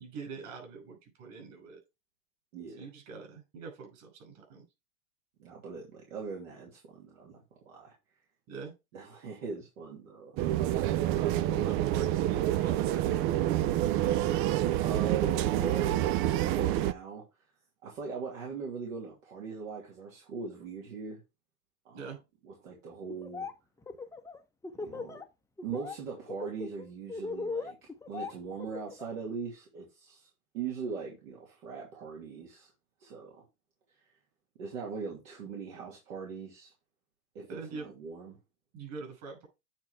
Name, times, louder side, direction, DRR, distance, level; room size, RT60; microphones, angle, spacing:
voice 1, 0.0-1.8 2.8-4.6 8.5-8.7 11.5-13.2 21.9-22.2 37.5-37.9 38.7-39.5, right 4 dB, 50° right, 5.8 m, -44 dB
voice 2, 2.5-2.9 5.4-7.4 7.6-7.9 8.9-10.3 11.4-11.8 14.8-15.9 16.2-17.2 17.8-21.2 21.8-22.1 22.4-23.5 24.8-25.2 25.6-27.8 28.1-30.3 30.5-32.7 33.0-33.4 34.6-36.7 37.3-38.4, right 5 dB, 70° right, 2.8 m, -40 dB
sound 1, 10.4-16.9, right 13 dB, 35° right, 0.4 m, -27 dB
Laughter, 23.1-23.5 23.8-25.2 25.6-26.0 26.3-29.1, left 4 dB, 5° left, 0.7 m, -38 dB
8.7 x 4.1 x 4.7 m
hypercardioid pair, 110°, 41 cm